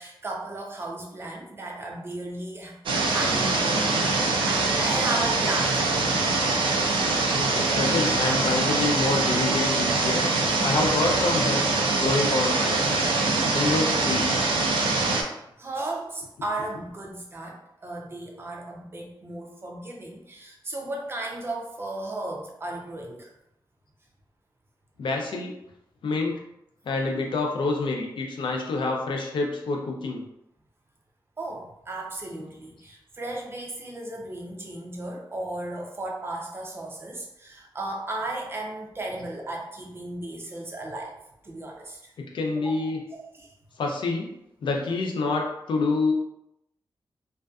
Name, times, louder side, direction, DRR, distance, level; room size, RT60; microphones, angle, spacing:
voice 1, 0.0-2.8 3.1-6.0 15.6-23.3 31.4-41.2 41.4-42.1 42.6-43.5, right 2 dB, 30° right, 0 dB, 0.4 m, -35 dB
sound 1, 2.9-15.2, right 3 dB, 90° right, 0.4 m, -24 dB
voice 2, 7.4-10.3 10.6-12.8 13.5-14.3 25.0-25.5 26.0-26.4 26.9-30.2 42.3-43.0 43.8-44.3 44.6-46.1, left 3 dB, 75° left, 1 dB, 0.5 m, -27 dB
2.5 x 2.2 x 2.3 m, 0.83 s
wide cardioid pair, 145°, 8 cm